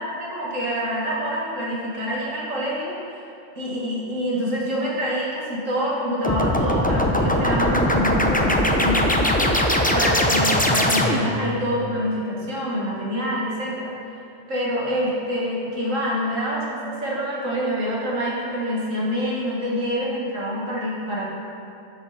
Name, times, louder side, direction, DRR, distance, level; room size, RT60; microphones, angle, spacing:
voice 1, 0.2-3.2 3.5-9.0 9.9-21.3, equal, 80° right, -6 dB, 2.6 m, -26 dB
sound 1, 6.2-11.4, left 1 dB, 10° left, 0.4 m, -20 dB
13.0 x 6.9 x 4.4 m, 2.7 s
omnidirectional pair, 1.3 m